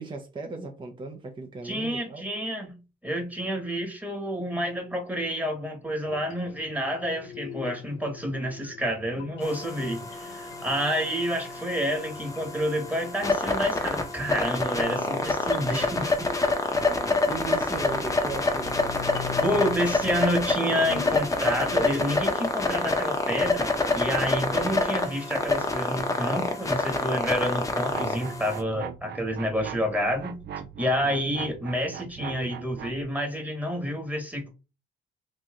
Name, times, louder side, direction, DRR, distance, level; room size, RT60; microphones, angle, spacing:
voice 1, 0.0-2.2 16.2-16.4 16.8-18.8 30.8-31.2, right 4 dB, 25° right, 0.7 m, -37 dB
voice 2, 1.6-16.2 19.4-30.4 30.8-34.5, equal, 5° right, 1.3 m, -29 dB
sound 1, 6.0-22.8, left 10 dB, 90° left, 0.6 m, -44 dB
sound 2, 9.4-28.6, left 3 dB, 15° left, 0.7 m, -27 dB
sound 3, 27.9-33.0, right 9 dB, 60° right, 0.5 m, -40 dB
3.1 x 2.6 x 3.6 m
cardioid pair, 90°, 20 cm